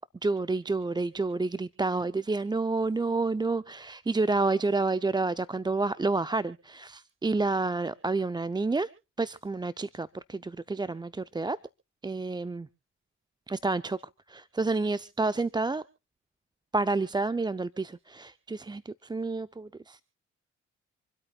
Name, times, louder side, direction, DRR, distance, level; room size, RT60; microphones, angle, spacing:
voice 1, 0.2-8.9 9.2-11.6 12.0-12.7 13.5-14.0 14.3-15.8 16.7-20.0, right 3 dB, 15° right, 16 dB, 0.6 m, -29 dB
27.0 x 13.0 x 2.4 m, 0.32 s
hypercardioid pair, 45°, 32 cm